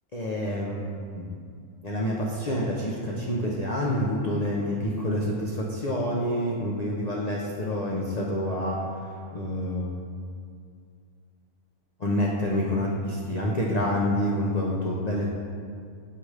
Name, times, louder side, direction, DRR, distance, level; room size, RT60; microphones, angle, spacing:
voice 1, 0.1-1.4 1.8-8.8 9.3-9.9 12.0-15.3, left 1 dB, 85° left, -3 dB, 0.3 m, -27 dB
7.8 x 3.1 x 4.9 m, 2.2 s
omnidirectional pair, 1.6 m